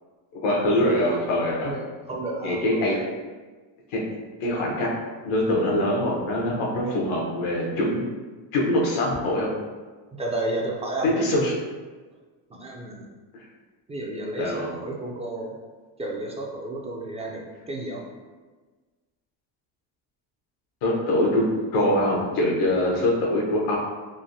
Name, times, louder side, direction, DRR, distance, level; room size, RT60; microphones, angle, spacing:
voice 1, 0.4-1.7 2.4-3.0 3.9-4.0 4.4-4.9 5.2-8.0 8.5-9.5 11.0-11.5 14.4-14.7 20.8-21.4 21.7-23.8, left 1 dB, 90° left, -2 dB, 0.9 m, -23 dB
voice 2, 1.6-3.0 10.1-11.3 12.5-13.1 13.9-15.6 16.0-18.0, right 2 dB, 15° right, -1 dB, 0.3 m, -32 dB
3.3 x 2.1 x 2.6 m, 1.3 s
supercardioid pair, 90°, 49 cm